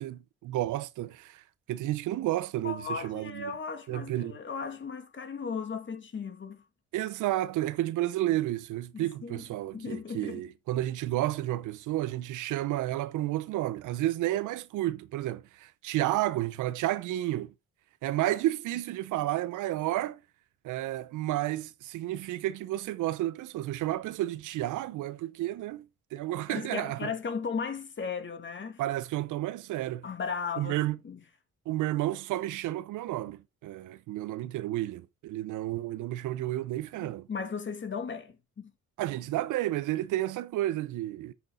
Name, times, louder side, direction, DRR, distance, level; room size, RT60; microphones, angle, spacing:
voice 1, 0.0-3.5 3.9-4.4 6.9-17.5 18.0-20.2 20.6-27.1 28.8-30.0 30.6-31.0 31.7-37.3 39.0-41.3, right 15 dB, 85° right, 0.7 m, -31 dB
voice 2, 2.6-6.6 8.9-9.4 9.7-10.4 26.5-28.8 30.0-30.8 31.0-31.2 37.0-38.7, left 5 dB, 40° left, 2.2 m, -36 dB
8.0 x 6.7 x 3.8 m
cardioid pair, 90°, 30 cm